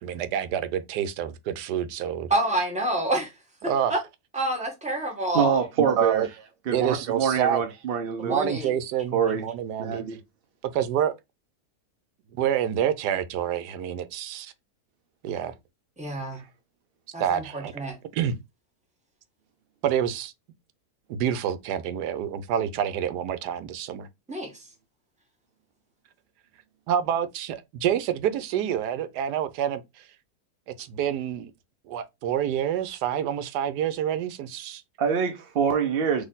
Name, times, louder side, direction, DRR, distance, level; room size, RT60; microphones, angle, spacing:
voice 1, 0.0-2.3 3.6-3.9 5.8-6.3 6.7-7.6 8.2-10.0 10.7-11.1 12.3-14.5 15.2-15.5 17.2-17.7 18.1-18.3 19.8-20.3 21.1-24.1 26.9-30.0 30.8-31.5 31.9-34.8, right 9 dB, 85° right, 1.2 m, -27 dB
voice 2, 2.3-3.3 3.6-4.0 4.3-5.6 8.2-8.7 16.0-16.4 17.1-18.0 24.3-24.7, right 1 dB, 5° right, 1.1 m, -28 dB
voice 3, 5.3-6.3 6.7-8.4 9.1-9.4 9.8-10.0 35.0-36.2, right 7 dB, 60° right, 0.6 m, -25 dB
4.1 x 3.0 x 3.8 m
omnidirectional pair, 1.7 m